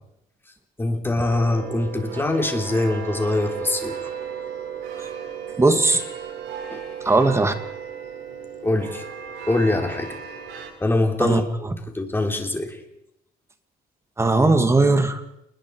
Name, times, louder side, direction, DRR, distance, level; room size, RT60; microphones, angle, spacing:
voice 1, 0.8-4.0 6.7-6.8 8.6-9.0 9.5-10.2 10.5-11.4 11.9-12.8, left 2 dB, 15° left, 4 dB, 3.9 m, -23 dB
sound 1, 1.2-10.7, right 7 dB, 85° right, 6.5 m, -35 dB
voice 2, 5.6-6.0 7.0-7.5 11.2-11.7 14.2-15.2, right 2 dB, 15° right, 9 dB, 2.4 m, -19 dB
28.5 x 21.0 x 4.9 m, 0.81 s
cardioid pair, 110°, 17 cm